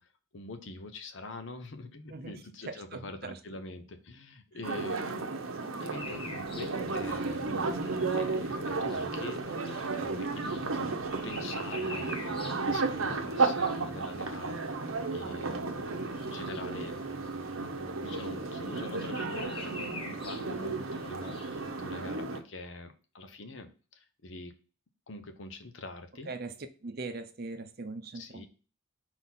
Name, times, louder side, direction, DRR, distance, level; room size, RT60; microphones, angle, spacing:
voice 1, 0.0-5.3 5.8-17.2 17.9-24.5 25.1-26.3 28.1-28.5, left 2 dB, 60° left, 0.8 m, -45 dB
voice 2, 2.7-3.4 4.5-4.6 26.3-26.5 26.8-28.5, right 3 dB, 45° right, 0.6 m, -40 dB
sound 1, 4.6-22.4, right 3 dB, 80° right, 0.8 m, -33 dB
sound 2, 5.9-21.9, left 2 dB, 25° left, 0.8 m, -48 dB
4.4 x 4.1 x 5.7 m
head